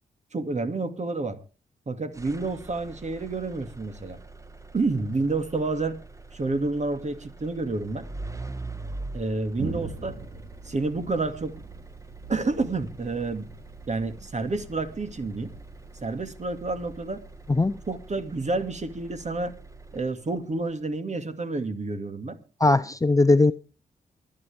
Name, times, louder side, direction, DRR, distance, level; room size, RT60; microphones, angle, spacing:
voice 1, 0.3-1.4 1.9-4.2 4.7-6.0 6.3-8.1 9.1-10.2 10.6-11.6 12.3-13.5 13.9-15.5 16.0-17.2 17.9-19.5 19.9-22.4, right 3 dB, 40° right, 2.3 m, -29 dB
sound 1, 2.1-20.4, right 2 dB, 20° right, 1.4 m, -43 dB
Thunder, 9.6-19.0, right 3 dB, 65° right, 4.1 m, -43 dB
voice 2, 22.6-23.5, left 2 dB, 20° left, 0.7 m, -19 dB
25.0 x 8.6 x 3.5 m
hypercardioid pair, 40°, 18 cm